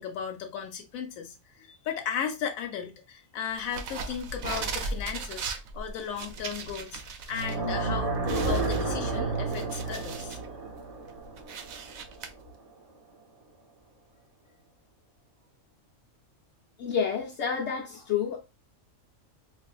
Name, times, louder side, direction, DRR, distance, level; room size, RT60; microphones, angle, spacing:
voice 1, 0.0-5.5 5.7-10.4, left 8 dB, 90° left, 1.0 m, -35 dB
sound 1, 3.6-7.5 7.9-8.0 8.3-10.5 10.9-12.3, right 4 dB, 85° right, 1.0 m, -37 dB
sound 2, 7.3-12.4, right 3 dB, 40° right, 0.5 m, -31 dB
voice 2, 16.8-18.4, left 7 dB, 65° left, 0.8 m, -29 dB
4.1 x 2.4 x 2.3 m
omnidirectional pair, 1.4 m